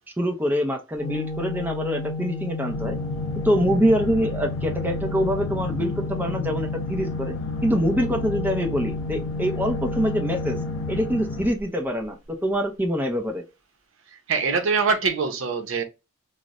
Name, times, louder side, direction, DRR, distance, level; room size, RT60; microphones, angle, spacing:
voice 1, 0.2-3.0 3.4-7.4 7.6-10.6 10.9-13.4, equal, 10° right, 0.5 m, -25 dB
Organ, 1.0-11.9, left 2 dB, 35° left, 0.6 m, -32 dB
sound 1, 2.7-11.5, left 3 dB, 75° left, 0.4 m, -34 dB
voice 2, 14.1-15.8, right 5 dB, 70° right, 0.7 m, -24 dB
2.4 x 2.1 x 3.9 m
head